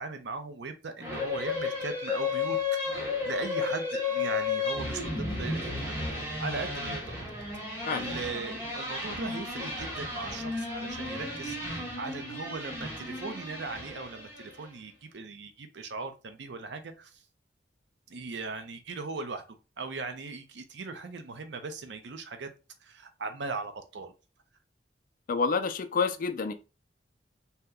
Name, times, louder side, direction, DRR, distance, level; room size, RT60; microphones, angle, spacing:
voice 1, 0.0-2.6 3.0-7.2 7.9-17.2 18.1-19.4 19.8-22.5 22.8-24.1, right 4 dB, 75° right, 0.5 m, -39 dB
sound 1, 1.0-14.6, left 4 dB, 15° right, 1.1 m, -33 dB
voice 2, 7.8-8.1 25.3-26.5, left 4 dB, 50° left, 0.3 m, -28 dB
2.8 x 2.1 x 3.6 m
head